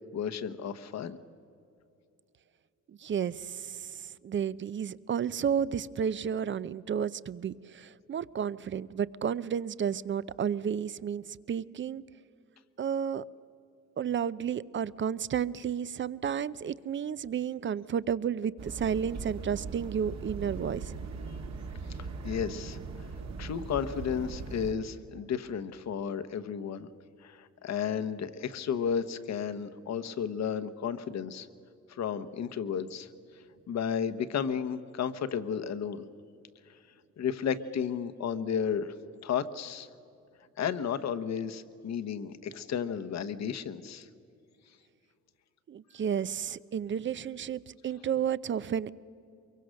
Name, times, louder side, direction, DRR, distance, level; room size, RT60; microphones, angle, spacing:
voice 1, 0.1-1.2 22.2-22.8 23.4-26.9 27.2-31.5 31.9-33.1 33.7-36.0 37.2-38.9 39.2-39.9 40.6-44.1, left 7 dB, 60° left, 11 dB, 1.1 m, -33 dB
voice 2, 3.0-12.0 12.8-13.2 14.0-20.9 45.7-48.9, right 8 dB, 40° right, 18 dB, 0.6 m, -32 dB
sound 1, 18.6-24.7, right 4 dB, 60° right, 1.9 m, -40 dB
23.5 x 22.5 x 6.4 m, 2.6 s
cardioid pair, 90°, 30 cm